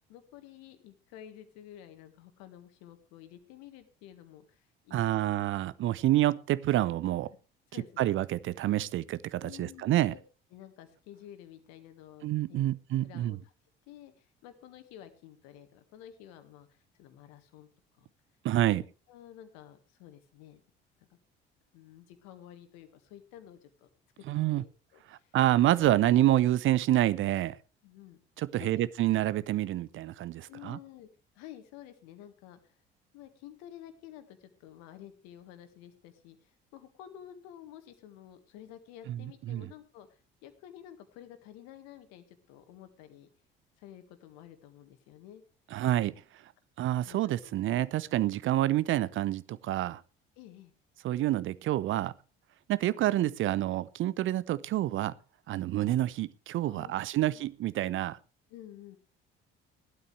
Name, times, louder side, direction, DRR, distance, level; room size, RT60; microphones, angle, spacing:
voice 1, 0.1-5.2 7.7-8.1 9.4-10.2 10.5-12.7 13.0-13.5 13.9-17.7 18.0-18.1 18.7-18.8 19.1-20.6 21.0-21.1 21.7-23.9 24.2-25.4 27.8-28.2 28.6-28.8 30.5-31.1 31.4-32.8 33.1-43.3 43.8-45.4 47.0-47.5 50.4-50.7 54.2-54.3 56.6-57.5 58.5-59.0, left 11 dB, 60° left, 1.8 m, -51 dB
voice 2, 4.9-7.3 8.0-10.1 12.2-13.4 18.4-18.8 24.3-24.6 25.3-27.6 28.4-30.8 39.1-39.2 39.5-39.7 45.7-46.1 46.8-50.0 51.0-52.1 52.7-55.1 55.5-58.2, right 14 dB, 45° right, 0.6 m, -28 dB
16.0 x 12.0 x 3.3 m
figure-of-eight pair, 55°, 29 cm